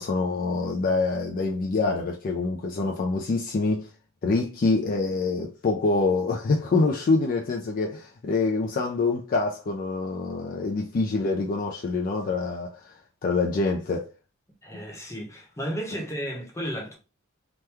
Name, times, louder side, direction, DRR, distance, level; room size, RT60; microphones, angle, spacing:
voice 1, 0.0-3.9 4.2-12.9 13.2-14.1 14.7-14.8, left 3 dB, 45° left, 0.4 m, -25 dB
voice 2, 14.6-17.0, equal, 15° left, 0.8 m, -33 dB
3.0 x 2.2 x 3.4 m
head